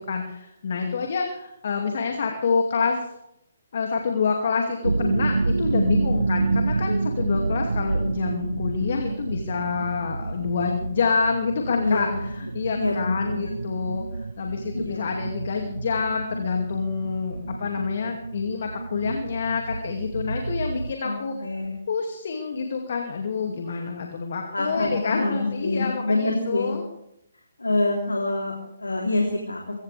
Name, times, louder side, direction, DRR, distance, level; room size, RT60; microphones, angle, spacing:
voice 1, 0.0-3.0 3.7-21.3 21.9-26.8, left 5 dB, 60° left, 2 dB, 2.5 m, -27 dB
sound 1, 4.8-20.9, right 3 dB, 80° right, 0.5 m, -28 dB
voice 2, 11.8-12.3 12.7-13.5 14.7-15.2 21.0-21.8 24.5-26.7 27.6-29.7, left 2 dB, 85° left, -1 dB, 3.4 m, -26 dB
23.0 x 16.5 x 3.5 m, 0.79 s
figure-of-eight pair, 140°, 0 cm